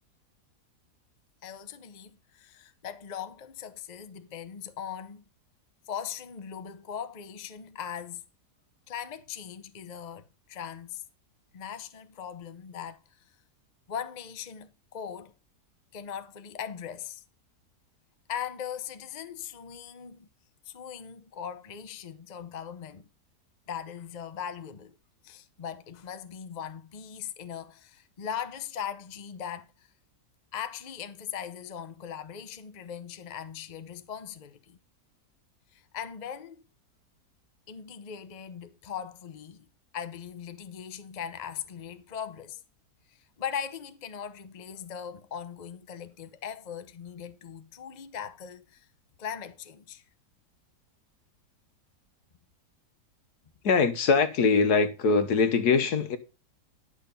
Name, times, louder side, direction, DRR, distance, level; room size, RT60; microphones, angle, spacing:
voice 1, 1.4-5.2 5.9-8.2 8.9-11.0 11.5-13.0 13.9-15.3 15.9-17.2 18.3-20.3 20.7-23.1 23.7-24.9 25.2-29.9 30.5-34.8 35.7-36.6 37.7-39.7 39.9-42.6 43.1-48.9 49.2-50.0, left 8 dB, 35° left, 0.8 m, -39 dB
voice 2, 53.6-56.2, left 4 dB, 70° left, 1.7 m, -22 dB
11.0 x 6.5 x 5.3 m
omnidirectional pair, 1.8 m